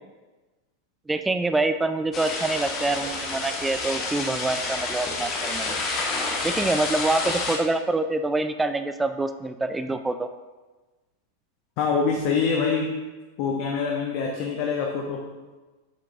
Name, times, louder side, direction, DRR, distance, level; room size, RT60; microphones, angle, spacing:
voice 1, 1.1-5.8 6.4-10.3, right 2 dB, 10° right, 9 dB, 0.4 m, -26 dB
sound 1, 2.1-7.6, left 3 dB, 30° left, 1.2 m, -29 dB
voice 2, 11.8-12.9 13.4-15.2, left 5 dB, 45° left, 0 dB, 0.8 m, -25 dB
7.3 x 7.3 x 2.5 m, 1.2 s
figure-of-eight pair, 90°, 0 cm